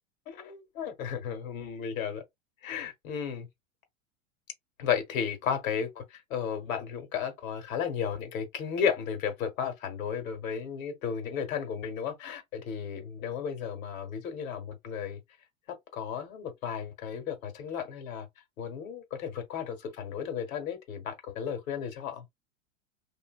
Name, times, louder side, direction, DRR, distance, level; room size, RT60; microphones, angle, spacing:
voice 1, 0.3-2.2 2.6-3.5 4.8-15.2 15.7-18.3 18.6-22.2, left 7 dB, 80° left, 1.3 m, -34 dB
2.8 x 2.7 x 2.4 m
hypercardioid pair, 110°, 40 cm